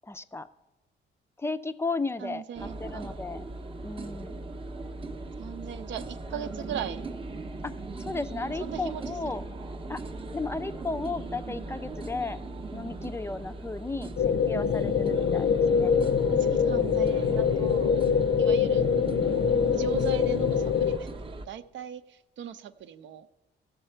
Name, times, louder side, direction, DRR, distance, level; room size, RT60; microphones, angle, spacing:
voice 1, 0.0-0.5 1.4-3.4 3.8-4.4 6.3-6.7 8.0-9.4 9.9-10.0 10.3-12.4 12.7-15.9 18.1-18.5, left 3 dB, 10° left, 11 dB, 0.4 m, -34 dB
voice 2, 2.2-3.2 5.4-7.0 8.6-9.2 16.3-17.9 18.4-18.9 19.8-23.3, right 9 dB, 70° right, 11 dB, 0.6 m, -39 dB
sound 1, 2.6-21.5, right 3 dB, 25° right, 0.7 m, -38 dB
sound 2, 14.2-21.0, left 7 dB, 55° left, 0.6 m, -24 dB
16.0 x 6.6 x 4.4 m, 1.1 s
cardioid pair, 90°, 20 cm